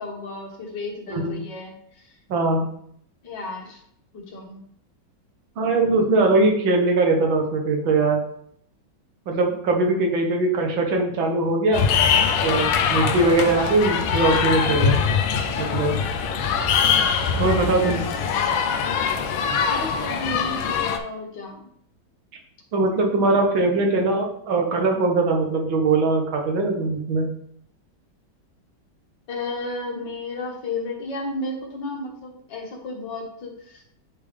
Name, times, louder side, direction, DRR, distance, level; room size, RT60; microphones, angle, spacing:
voice 1, 0.0-2.2 3.2-3.8 4.1-4.6 18.1-18.6 19.7-21.6 29.3-33.8, left 2 dB, 65° left, 0 dB, 1.9 m, -33 dB
voice 2, 1.1-1.4 2.3-2.7 5.6-8.2 9.3-11.8 12.4-15.0 15.6-16.0 17.4-18.1 22.7-27.3, right 2 dB, 80° right, 2 dB, 1.8 m, -21 dB
sound 1, 11.7-21.0, left 6 dB, 85° left, 1.4 m, -22 dB
9.1 x 3.5 x 3.3 m, 0.67 s
omnidirectional pair, 2.1 m